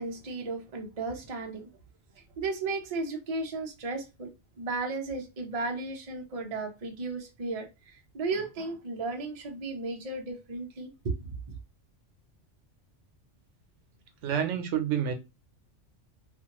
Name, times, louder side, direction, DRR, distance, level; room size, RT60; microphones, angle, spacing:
voice 1, 0.0-1.7 2.4-4.3 4.6-11.5, right 3 dB, 40° right, 0.6 m, -34 dB
voice 2, 14.2-15.1, right 8 dB, 80° right, 0.9 m, -28 dB
2.5 x 2.4 x 2.8 m
omnidirectional pair, 1.2 m